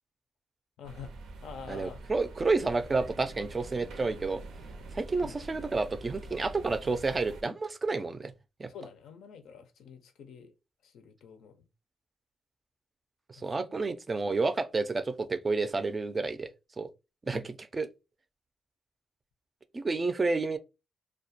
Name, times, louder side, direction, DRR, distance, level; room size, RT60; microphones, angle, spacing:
voice 1, 0.8-1.1 1.4-2.0 5.2-5.4 8.7-10.5 10.8-11.6 13.4-13.8 17.3-17.5, left 6 dB, 85° left, 0.4 m, -47 dB
sound 1, 0.8-7.4, right 3 dB, 85° right, 0.5 m, -45 dB
voice 2, 1.7-4.4 4.9-8.3 8.6-8.7 13.4-16.5 16.8-16.9 17.3-17.9 19.7-20.6, right 3 dB, 30° right, 0.4 m, -30 dB
2.3 x 2.1 x 2.6 m
cardioid pair, 80°, 0 cm